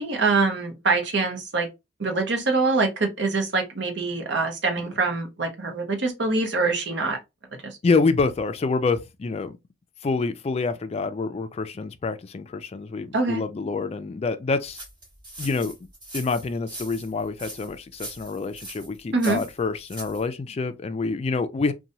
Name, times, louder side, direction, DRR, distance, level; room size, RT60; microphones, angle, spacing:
voice 1, 0.0-1.7 2.0-7.2 7.6-7.8 13.1-13.4 19.1-19.4, right 3 dB, 65° right, 0.8 m, -24 dB
voice 2, 7.8-9.6 10.0-14.8 15.4-15.7 16.1-21.7, left 4 dB, 35° left, 0.3 m, -27 dB
sound 1, 14.6-20.3, right 1 dB, 25° right, 1.4 m, -41 dB
2.9 x 2.2 x 2.7 m
head